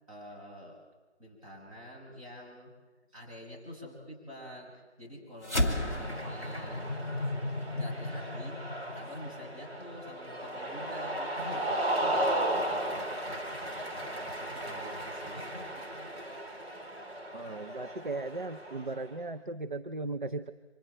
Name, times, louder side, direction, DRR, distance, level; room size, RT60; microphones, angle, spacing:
voice 1, 0.1-0.8 1.2-2.7 3.1-7.4 7.7-8.6 8.9-13.4 14.0-16.1, equal, 30° right, -4 dB, 6.5 m, -47 dB
sound 1, 5.4-10.1, left 1 dB, 15° right, 1.3 m, -34 dB
Cheering, 5.6-19.1, right 1 dB, 60° right, 3.5 m, -36 dB
voice 2, 17.3-20.5, right 3 dB, 45° right, 9 dB, 0.7 m, -37 dB
29.5 x 25.0 x 4.4 m, 1.3 s
figure-of-eight pair, 170°, 34 cm